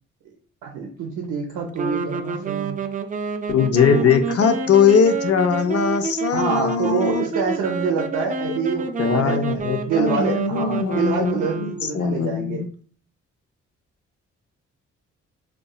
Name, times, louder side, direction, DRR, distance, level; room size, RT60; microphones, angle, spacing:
voice 1, 0.6-2.8 3.9-4.1 6.3-12.6, right 5 dB, 85° right, 1 dB, 0.5 m, -26 dB
sound 1, 1.8-12.2, right 4 dB, 30° right, 0.3 m, -28 dB
voice 2, 3.5-7.3 9.0-12.7, left 6 dB, 55° left, 7 dB, 0.5 m, -20 dB
2.7 x 2.2 x 2.3 m, 0.42 s
supercardioid pair, 55°, 30 cm